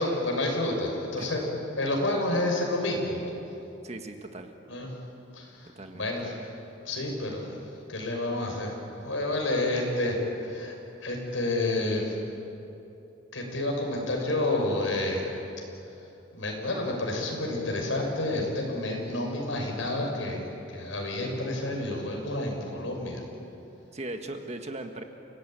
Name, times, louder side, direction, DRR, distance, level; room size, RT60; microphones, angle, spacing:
voice 1, 0.0-3.2 4.7-4.9 5.3-6.5 6.8-7.6 7.9-10.2 10.4-10.7 11.0-12.2 13.3-15.3 16.3-20.4 20.7-23.2, left 2 dB, 90° left, 1 dB, 6.3 m, -29 dB
voice 2, 3.8-4.5 5.7-6.1 23.9-25.0, right 2 dB, 35° right, 5 dB, 1.7 m, -38 dB
29.5 x 18.0 x 9.1 m, 2.9 s
head